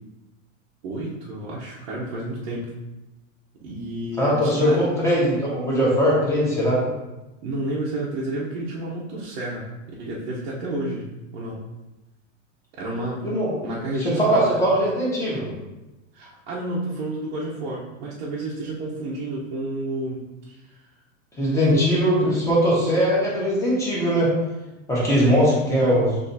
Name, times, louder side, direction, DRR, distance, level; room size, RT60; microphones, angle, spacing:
voice 1, 0.8-2.7 3.6-4.8 7.4-9.6 10.0-11.6 12.8-13.2 13.6-14.6 16.1-20.8 21.7-21.8, right 1 dB, 50° right, -7 dB, 1.0 m, -30 dB
voice 2, 4.2-6.8 13.2-13.5 14.0-15.5 21.4-24.3 24.9-26.2, equal, 5° left, -7 dB, 1.5 m, -20 dB
6.4 x 2.9 x 2.8 m, 1.0 s
supercardioid pair, 140°, 40 cm